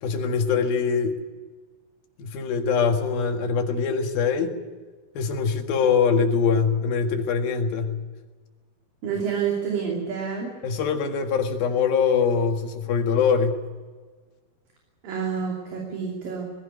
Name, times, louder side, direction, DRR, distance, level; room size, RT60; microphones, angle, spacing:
voice 1, 0.0-1.2 2.2-4.6 5.2-8.0 10.6-13.6, left 6 dB, 65° left, 4 dB, 3.6 m, -23 dB
voice 2, 9.0-10.5 15.0-16.5, right 6 dB, 60° right, 0 dB, 4.5 m, -28 dB
20.0 x 16.0 x 9.5 m, 1.4 s
omnidirectional pair, 4.7 m